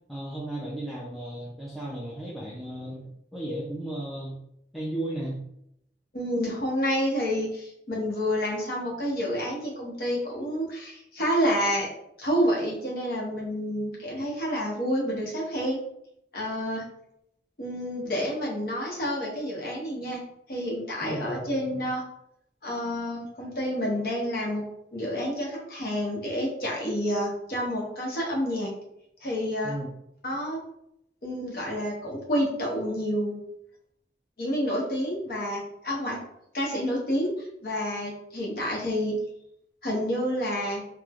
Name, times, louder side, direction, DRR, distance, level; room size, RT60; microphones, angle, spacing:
voice 1, 0.1-4.4 4.7-5.4 21.0-21.8 29.6-29.9, right 1 dB, ahead, -8 dB, 0.3 m, -35 dB
voice 2, 6.1-11.9 12.2-15.8 16.3-16.8 17.6-20.2 20.5-22.0 22.6-24.6 24.9-28.7 29.2-29.7 30.2-30.6 31.2-33.4 34.4-36.2 36.5-37.3 37.6-39.2 39.8-40.8, equal, 55° left, -3 dB, 0.8 m, -29 dB
3.0 x 2.0 x 2.4 m, 0.77 s
head